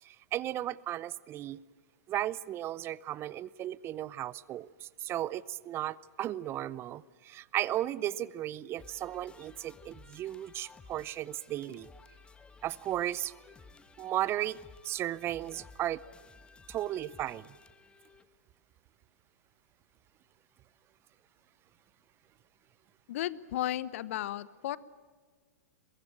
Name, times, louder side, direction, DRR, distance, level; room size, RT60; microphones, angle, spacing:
voice 1, 0.0-1.6 2.1-11.9 12.6-13.3 14.0-14.6 14.8-16.0 16.7-17.5, right 13 dB, 30° right, 22 dB, 0.6 m, -35 dB
sound 1, 8.8-18.3, left 4 dB, 10° left, 1.2 m, -56 dB
voice 2, 23.1-24.8, left 13 dB, 60° left, 18 dB, 1.0 m, -34 dB
23.0 x 22.5 x 9.0 m, 1.5 s
hypercardioid pair, 105°, 8 cm